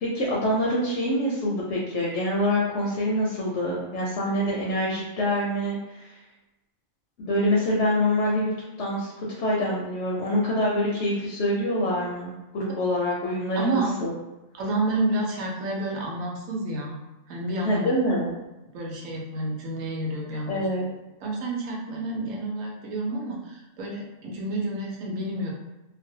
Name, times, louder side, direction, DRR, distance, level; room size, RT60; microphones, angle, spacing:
voice 1, 0.0-6.2 7.2-8.5 8.8-14.1 17.6-18.3 20.5-20.9, left 1 dB, 70° left, -4 dB, 0.8 m, -25 dB
voice 2, 13.6-13.9 14.5-17.0 17.3-17.9 18.7-20.7 21.2-25.5, right 2 dB, 75° right, -2 dB, 1.0 m, -29 dB
2.5 x 2.1 x 2.6 m, 1.0 s
omnidirectional pair, 1.4 m